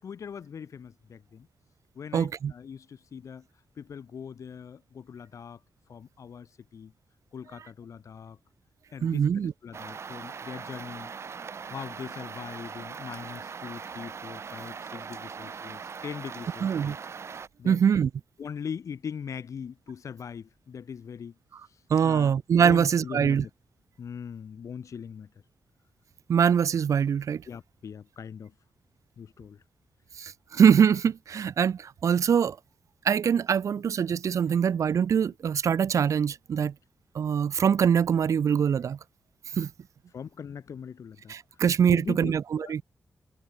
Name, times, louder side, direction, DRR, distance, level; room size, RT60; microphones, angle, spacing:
voice 1, 0.0-1.5 2.0-3.5 3.8-5.6 5.9-6.9 7.3-8.4 8.9-11.1 11.7-17.0 17.6-17.8 18.4-21.3 22.0-22.3 22.6-23.5 24.0-25.3 27.5-28.5 29.2-29.6 40.1-41.3 41.9-42.8, left 7 dB, 70° left, 7.1 m, -41 dB
voice 2, 2.1-2.5 9.0-9.5 16.6-17.0 17.6-18.1 21.9-23.4 26.3-27.4 30.2-32.6 33.0-36.7 37.1-39.0 39.5-39.7 41.3-42.8, right 7 dB, 70° right, 1.1 m, -23 dB
sound 1, 9.7-17.5, right 6 dB, 55° right, 1.8 m, -40 dB
cardioid pair, 100°, 6 cm